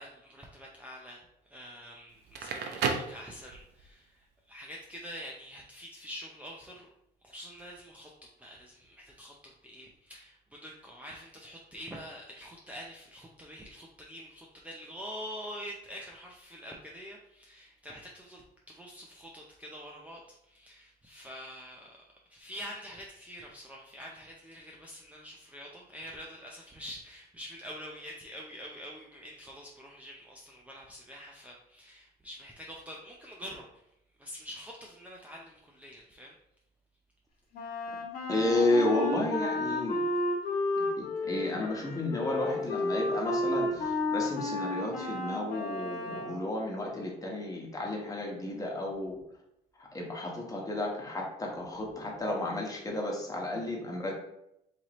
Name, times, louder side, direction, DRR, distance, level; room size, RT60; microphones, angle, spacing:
voice 1, 0.0-6.9 7.2-22.0 22.3-33.8 34.2-36.4, equal, 10° right, -2 dB, 0.5 m, -46 dB
Crackle, 2.2-3.9, right 5 dB, 75° right, 0.6 m, -33 dB
Wind instrument woodwind instrument, 37.5-46.4, left 2 dB, 60° left, 1.3 m, -32 dB
voice 2, 38.3-40.0 40.8-49.2 49.8-54.1, left 2 dB, 20° left, -1 dB, 1.2 m, -32 dB
4.6 x 2.8 x 3.0 m, 0.80 s
cardioid pair, 110°, 17 cm